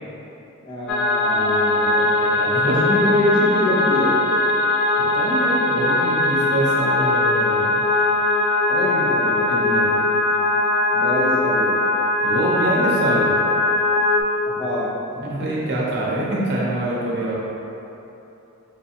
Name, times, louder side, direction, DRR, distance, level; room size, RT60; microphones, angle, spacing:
voice 1, 0.6-2.1 2.7-4.1 8.7-9.6 10.9-11.8 14.4-14.9, left 1 dB, 20° left, -7 dB, 0.8 m, -24 dB
sound 1, 0.9-14.2, left 2 dB, 50° left, 0.4 m, -20 dB
voice 2, 1.2-2.7 5.0-7.7 9.5-9.9 12.2-13.3 15.2-17.4, right 1 dB, 50° right, -6 dB, 0.8 m, -25 dB
4.6 x 3.3 x 2.8 m, 3.0 s
head